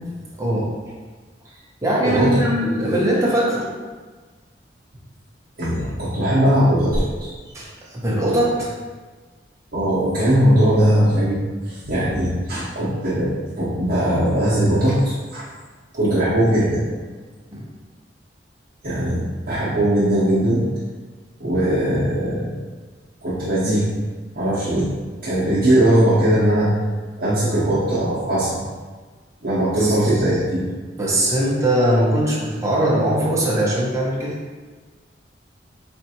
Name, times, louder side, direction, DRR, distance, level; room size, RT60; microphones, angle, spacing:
voice 1, 0.4-0.7 1.8-3.7 7.5-8.7 12.8-12.9 17.5-17.6 29.8-29.9 30.9-34.4, right 1 dB, 15° right, -6 dB, 0.7 m, -21 dB
voice 2, 2.0-2.4 5.6-7.3 9.7-15.4 15.9-16.9 18.8-20.7 21.4-22.5 23.2-23.9 24.3-24.9 25.2-26.7 27.2-28.6 29.4-30.6, right 1 dB, 50° right, -12 dB, 0.8 m, -19 dB
4.2 x 2.4 x 2.8 m, 1.4 s
head